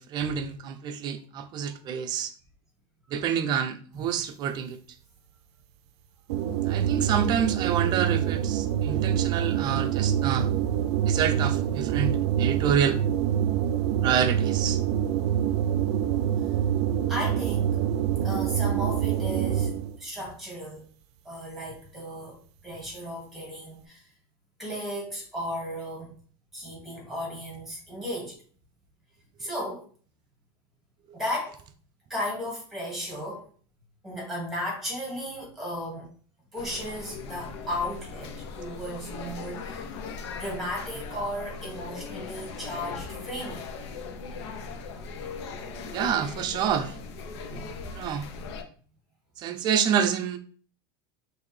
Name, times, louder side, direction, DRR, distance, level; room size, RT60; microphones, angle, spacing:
voice 1, 0.0-2.3 3.1-4.8 6.5-10.5 11.1-13.0 14.0-14.8 45.9-47.0 47.9-48.3 49.4-50.4, right 8 dB, 30° right, 0.5 m, -28 dB
sound 1, 6.3-20.0, right 10 dB, 90° right, 0.4 m, -26 dB
voice 2, 17.1-17.8 18.2-20.9 21.2-24.1 24.6-26.1 26.5-28.4 29.4-29.9 31.1-31.6 32.1-33.5 34.0-36.1 36.5-39.9 40.4-43.6 47.5-47.7, equal, ahead, 1.9 m, -35 dB
sound 2, 36.6-48.6, left 4 dB, 90° left, 0.7 m, -39 dB
5.8 x 2.6 x 3.2 m
supercardioid pair, 160°, 14 cm